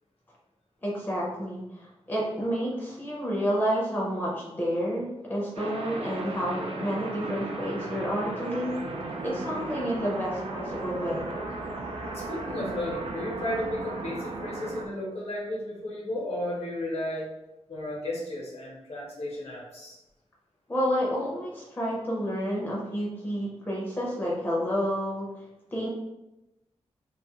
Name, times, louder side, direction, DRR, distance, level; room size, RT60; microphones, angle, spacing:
voice 1, 0.8-8.8 9.2-11.3 20.7-25.3 25.7-25.9, equal, 15° left, -5 dB, 0.5 m, -30 dB
sound 1, 5.6-14.9, right 2 dB, 65° right, 0.4 m, -36 dB
voice 2, 12.0-17.3 17.7-20.0, left 1 dB, 65° left, -3 dB, 0.9 m, -34 dB
2.5 x 2.3 x 2.9 m, 0.95 s
wide cardioid pair, 160°, 11 cm